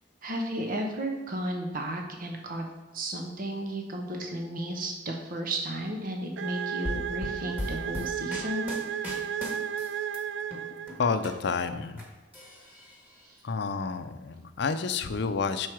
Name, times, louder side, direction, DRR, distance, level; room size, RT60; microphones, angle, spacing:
voice 1, 0.2-2.6 2.9-8.7 13.2-13.4, right 1 dB, 50° right, 2 dB, 0.8 m, -33 dB
sound 1, 6.4-11.2, right 8 dB, 75° right, 0.3 m, -34 dB
sound 2, 6.8-10.2 10.5-12.0 12.3-13.2, left 1 dB, 10° right, 1.5 m, -37 dB
voice 2, 11.0-12.0 13.4-15.7, left 5 dB, 65° left, 10 dB, 0.5 m, -29 dB
6.2 x 4.6 x 4.5 m, 1.2 s
head